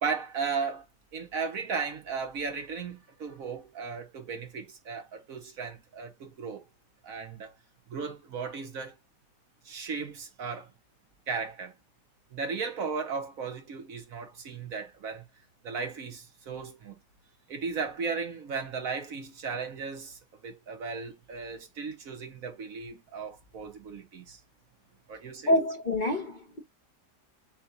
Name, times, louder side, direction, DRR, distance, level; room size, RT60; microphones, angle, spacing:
voice 1, 0.0-0.9 1.1-6.6 7.0-7.5 7.9-9.0 9.6-10.7 11.3-11.7 12.3-15.2 15.6-17.0 17.5-24.4 25.1-25.5, right 5 dB, 60° right, 1.3 m, -36 dB
voice 2, 25.5-26.6, left 1 dB, 40° left, 0.8 m, -26 dB
7.0 x 2.4 x 2.7 m
omnidirectional pair, 1.8 m